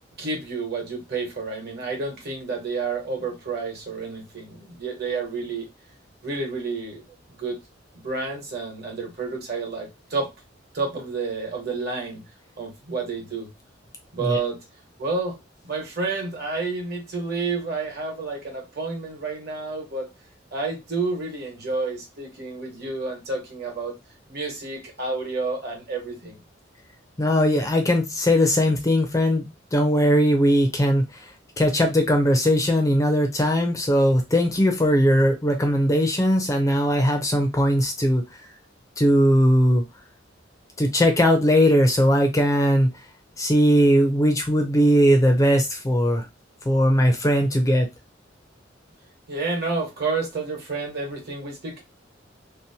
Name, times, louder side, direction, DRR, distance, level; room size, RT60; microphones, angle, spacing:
voice 1, 0.2-5.7 6.2-7.6 7.9-10.3 10.7-12.2 12.6-13.5 14.1-14.6 15.0-15.4 15.6-20.1 20.5-23.9 24.3-26.4 49.3-51.8, right 4 dB, 55° right, 1.1 m, -30 dB
voice 2, 27.2-31.3 31.6-38.2 39.0-39.8 40.8-42.9 43.4-46.2 46.7-47.9, equal, 15° left, 0.4 m, -19 dB
2.7 x 2.0 x 2.7 m
head